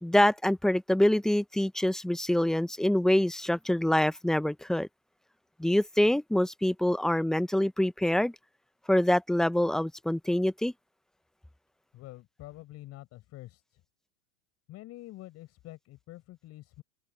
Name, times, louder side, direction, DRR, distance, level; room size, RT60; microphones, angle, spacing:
voice 1, 0.0-4.9 5.6-8.3 8.9-10.7, left 1 dB, ahead, 0.6 m, -25 dB
voice 2, 11.9-13.8 14.7-16.8, left 16 dB, 35° left, 4.7 m, -47 dB
hypercardioid pair, 125°, 43 cm